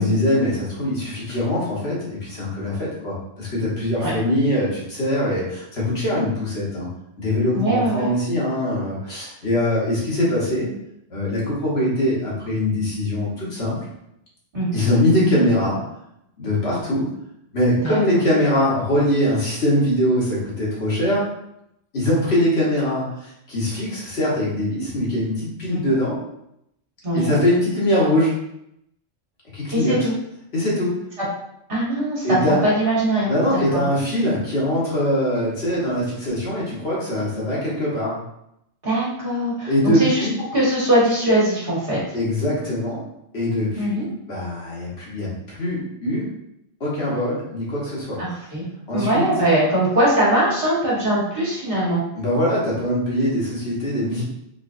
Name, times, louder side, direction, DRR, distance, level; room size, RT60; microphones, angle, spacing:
voice 1, 0.0-6.9 7.2-10.7 11.1-13.8 14.7-15.8 16.4-17.1 17.5-21.2 21.9-26.2 27.1-28.4 29.5-30.1 30.5-31.0 32.2-32.6 33.3-38.2 39.6-40.3 42.1-43.0 43.3-46.3 46.8-48.2 48.9-49.2 52.2-54.2, left 1 dB, 55° left, -6 dB, 1.4 m, -22 dB
voice 2, 7.5-8.1 14.5-14.8 17.8-18.0 25.7-26.0 27.0-27.4 29.7-30.1 31.7-33.8 38.8-40.3 40.5-42.0 43.8-44.0 48.2-48.7 48.9-52.0, right 1 dB, 50° right, -7 dB, 1.5 m, -21 dB
3.9 x 3.1 x 2.5 m, 0.79 s
omnidirectional pair, 1.3 m